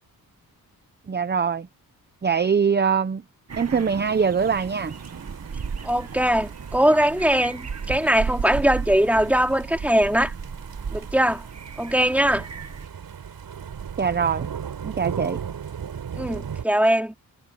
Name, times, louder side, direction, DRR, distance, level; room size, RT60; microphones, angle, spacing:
voice 1, 1.1-1.7 2.2-3.2 3.6-4.9 14.0-14.5 14.8-15.4, right 6 dB, 30° right, 0.8 m, -22 dB
sound 1, 3.5-12.9, right 5 dB, 45° right, 2.0 m, -35 dB
sound 2, 4.4-16.6, right 7 dB, 75° right, 6.5 m, -37 dB
voice 2, 5.8-7.6 7.9-10.3 10.9-11.4 11.8-12.5 16.2-17.1, equal, 5° right, 3.4 m, -21 dB
wide cardioid pair, 135°, 36 cm